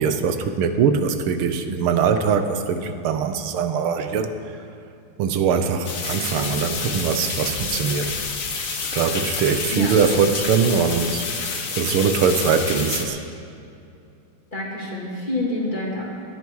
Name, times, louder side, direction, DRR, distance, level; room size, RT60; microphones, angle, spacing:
voice 1, 0.0-4.3 5.2-8.2 8.9-11.3 11.7-13.2, right 6 dB, 85° right, 8 dB, 1.7 m, -22 dB
sound 1, 5.8-13.0, left 4 dB, 45° left, 1.4 m, -29 dB
voice 2, 14.5-16.0, left 1 dB, 20° left, -4 dB, 2.7 m, -27 dB
20.0 x 10.5 x 4.7 m, 2.6 s
omnidirectional pair, 2.3 m